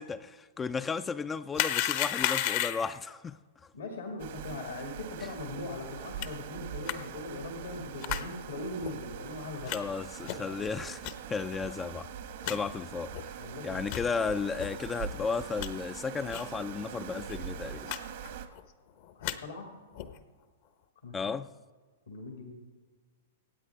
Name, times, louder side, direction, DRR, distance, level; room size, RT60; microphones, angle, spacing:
voice 1, 0.0-3.4 9.7-11.0 11.3-12.1 12.5-17.9 21.1-21.5, left 5 dB, 20° left, 0.4 m, -34 dB
sound 1, 1.5-3.0 6.2-6.3 6.9-7.0 8.0-8.2 8.8-8.9 9.7-9.8 10.2-10.5 11.0-11.1 11.7-11.8 12.0-12.1 12.4-12.6 13.1-13.2 13.8-14.1 14.6-14.7 15.2-15.7 16.3-16.5 16.8-16.9 17.2-17.3 17.9-18.0 18.2-18.6 19.0-19.4 19.9-20.2, left 12 dB, 55° left, 1.0 m, -32 dB
voice 2, 3.7-9.8 10.5-10.7 13.4-13.8 19.2-19.7 21.0-21.2 22.1-22.6, left 2 dB, 80° left, 2.0 m, -40 dB
sound 2, 4.2-18.5, right 8 dB, 65° right, 1.3 m, -42 dB
25.0 x 9.1 x 3.5 m
hypercardioid pair, 110°, 0 cm